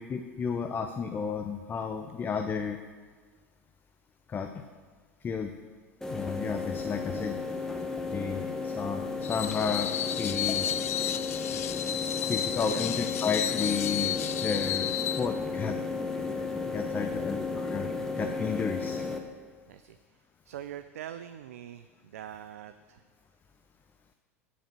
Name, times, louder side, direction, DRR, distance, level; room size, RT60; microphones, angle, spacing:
voice 1, 0.0-2.8 4.3-4.6 5.2-5.5 6.1-7.4 8.1-9.9 10.2-10.7 11.7-11.8 12.3-14.9 15.2-15.8 16.7-17.9 18.2-19.0, left 6 dB, 25° left, 5 dB, 0.6 m, -32 dB
sound 1, 6.0-19.2, left 4 dB, 5° left, 1.1 m, -34 dB
Screech, 9.2-15.3, left 11 dB, 70° left, 0.4 m, -32 dB
voice 2, 12.3-12.8 17.1-17.3 19.7-20.0 20.4-23.0, right 11 dB, 70° right, 11 dB, 0.4 m, -44 dB
10.0 x 5.1 x 7.4 m, 1.6 s
figure-of-eight pair, 85°, 8 cm